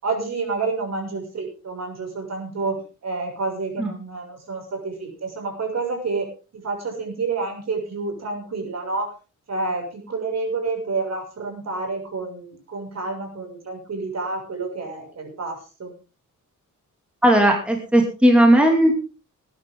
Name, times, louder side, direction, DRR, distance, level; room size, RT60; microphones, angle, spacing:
voice 1, 0.0-9.1 9.5-15.9, right 3 dB, 55° right, 2 dB, 6.7 m, -29 dB
voice 2, 17.2-19.0, right 1 dB, 5° right, 1 dB, 2.9 m, -16 dB
20.5 x 10.5 x 3.8 m, 0.34 s
wide cardioid pair, 140°, 32 cm